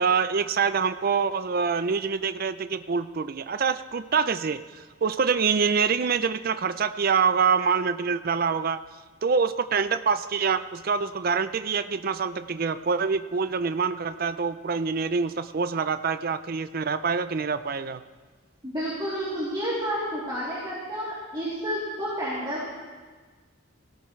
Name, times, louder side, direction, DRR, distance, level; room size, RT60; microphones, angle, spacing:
voice 1, 0.0-4.6 5.0-8.8 9.2-18.0, right 5 dB, 45° right, 12 dB, 0.5 m, -25 dB
voice 2, 18.6-22.7, equal, 25° right, -10 dB, 3.1 m, -30 dB
17.5 x 17.0 x 3.2 m, 1.4 s
head